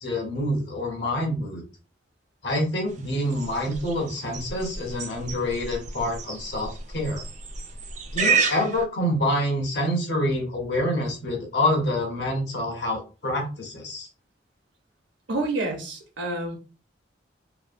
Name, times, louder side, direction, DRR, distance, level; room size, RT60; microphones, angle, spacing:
voice 1, 0.0-1.6 2.4-7.2 8.1-14.1, left 1 dB, 60° left, 0 dB, 1.0 m, -27 dB
sound 1, 2.9-8.8, right 5 dB, 40° right, 0.4 m, -30 dB
voice 2, 15.3-16.6, right 2 dB, 85° right, 2 dB, 0.9 m, -28 dB
3.0 x 2.2 x 2.5 m, 0.33 s
head